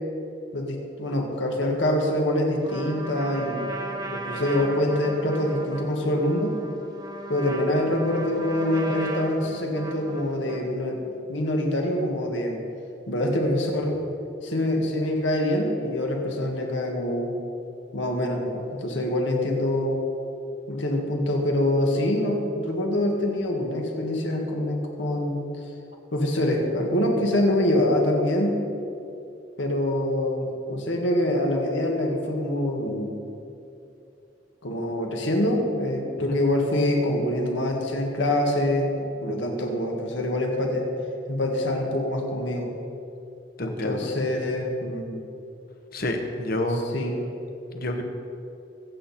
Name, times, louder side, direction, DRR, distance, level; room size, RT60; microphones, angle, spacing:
voice 1, 0.5-6.6 7.3-12.6 13.1-14.0 14.4-17.4 17.9-20.0 20.7-25.4 26.1-28.6 29.6-33.1 34.6-40.9 41.3-42.7 43.6-45.2 46.9-47.2, left 1 dB, 80° left, 1 dB, 2.0 m, -25 dB
Trumpet, 2.6-10.7, right 2 dB, 20° right, 1.4 m, -37 dB
voice 2, 43.6-44.1 45.9-46.9 47.7-48.0, left 1 dB, 50° left, 4 dB, 1.3 m, -28 dB
24.0 x 8.3 x 4.4 m, 2.7 s
head